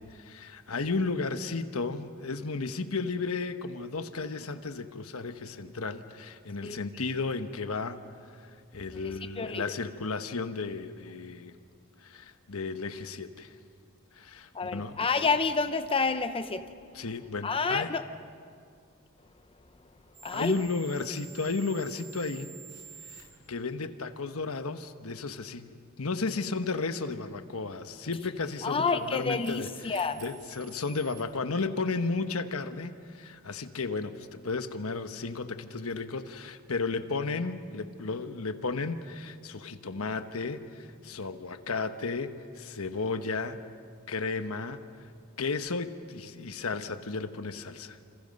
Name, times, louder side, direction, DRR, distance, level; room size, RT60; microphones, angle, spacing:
voice 1, 0.0-8.1 8.4-11.5 12.0-13.5 14.1-15.0 16.9-17.9 20.3-22.5 23.1-43.6 44.1-44.8 45.4-48.0, left 4 dB, 85° left, 9 dB, 1.1 m, -34 dB
voice 2, 8.9-9.7 14.5-16.6 17.4-18.0 20.2-20.5 28.6-30.2, left 4 dB, 25° left, 10 dB, 0.8 m, -29 dB
sound 1, 20.1-23.2 28.4-31.2, right 7 dB, 60° right, 6.5 m, -50 dB
29.0 x 27.5 x 5.3 m, 2.2 s
head